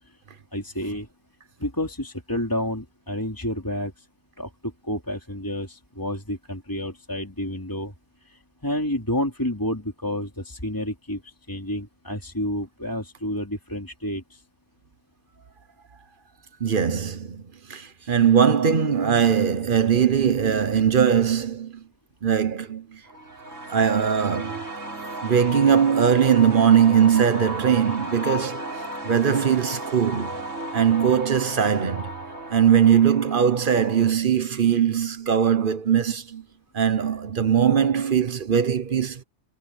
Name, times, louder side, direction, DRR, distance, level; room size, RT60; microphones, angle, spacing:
voice 1, 0.5-1.1 1.6-4.0 4.4-7.9 8.3-14.4, left 1 dB, 15° left, 3.2 m, -30 dB
voice 2, 16.6-17.4 17.7-21.8 22.2-23.0 23.7-24.6 25.2-28.6 29.0-30.4 30.7-32.1 32.5-36.4 36.7-39.2, right 8 dB, 45° right, 1.1 m, -20 dB
sound 1, 23.1-34.1, equal, 80° right, 5.0 m, -34 dB
omnidirectional pair, 1.3 m